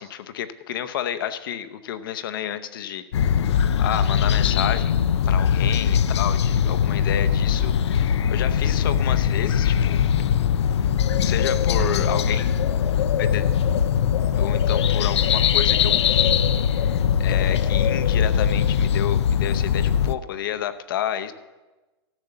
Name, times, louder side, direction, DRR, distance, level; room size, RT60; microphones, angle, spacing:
voice 1, 0.0-5.0 5.3-10.0 11.2-12.6 13.2-13.5 14.3-16.3 16.6-21.3, left 10 dB, 55° left, 11 dB, 0.8 m, -31 dB
sound 1, 3.1-20.1, left 8 dB, 90° left, 0.5 m, -21 dB
Explosion, 11.8-13.5, right 2 dB, ahead, 0.5 m, -35 dB
13.5 x 6.9 x 6.7 m, 1.2 s
hypercardioid pair, 165°, 14 cm